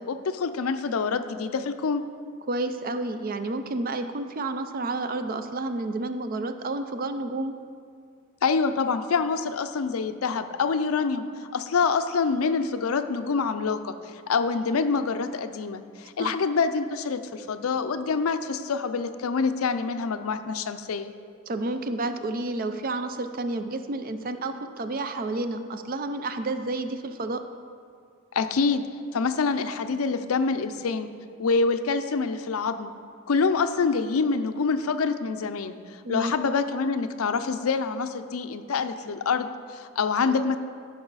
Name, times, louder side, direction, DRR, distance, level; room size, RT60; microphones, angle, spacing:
voice 1, 0.0-2.0 8.4-11.2 11.5-13.9 14.3-21.1 28.3-31.1 31.4-32.9 33.3-35.7 36.1-40.6, left 4 dB, 85° left, 10 dB, 0.5 m, -26 dB
voice 2, 2.5-7.5 16.2-16.4 21.5-27.4 36.0-36.4, right 2 dB, 45° right, 9 dB, 0.5 m, -30 dB
14.5 x 5.4 x 4.0 m, 2.2 s
head